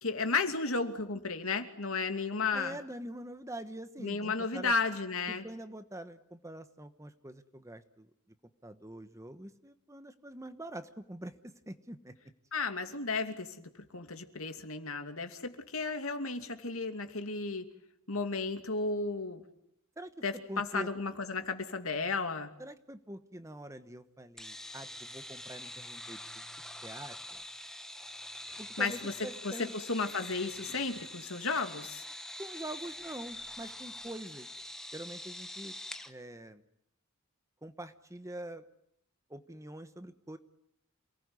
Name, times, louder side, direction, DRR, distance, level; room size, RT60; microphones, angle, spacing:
voice 1, 0.0-2.8 4.0-5.4 12.5-17.7 18.1-19.4 20.2-22.5 28.5-29.1 29.4-32.0, left 4 dB, 70° left, 7 dB, 2.7 m, -34 dB
voice 2, 2.5-4.7 5.3-8.1 8.6-12.1 20.0-20.9 22.6-26.4 26.8-27.4 28.6-29.7 32.4-34.5 34.9-35.7 36.1-36.6 37.6-38.6 39.3-40.4, right 1 dB, 15° right, 10 dB, 1.1 m, -45 dB
sound 1, 24.4-36.1, left 1 dB, ahead, 1.3 m, -45 dB
28.0 x 19.5 x 9.7 m, 0.77 s
head